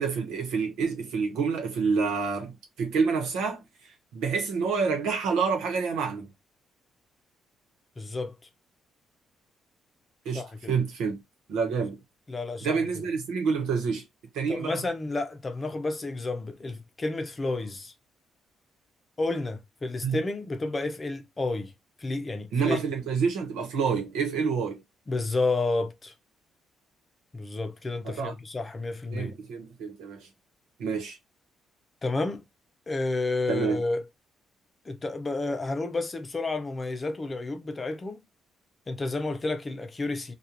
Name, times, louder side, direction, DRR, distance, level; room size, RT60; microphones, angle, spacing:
voice 1, 0.0-3.6 4.1-6.3 10.2-10.4 10.7-11.2 11.5-12.0 12.6-14.0 14.3-14.8 20.0-20.2 22.5-24.8 28.0-28.3 29.1-30.3 30.8-31.2 33.5-33.8, right 5 dB, 90° right, 1.0 m, -28 dB
voice 2, 8.0-8.4 10.3-10.5 12.3-12.8 14.5-17.9 19.2-21.7 22.0-22.8 25.1-26.1 27.3-29.3 32.0-32.4 32.9-34.1 34.8-38.2 38.9-40.3, left 2 dB, 30° left, 0.6 m, -30 dB
2.4 x 2.3 x 2.8 m
cardioid pair, 90°, 0 cm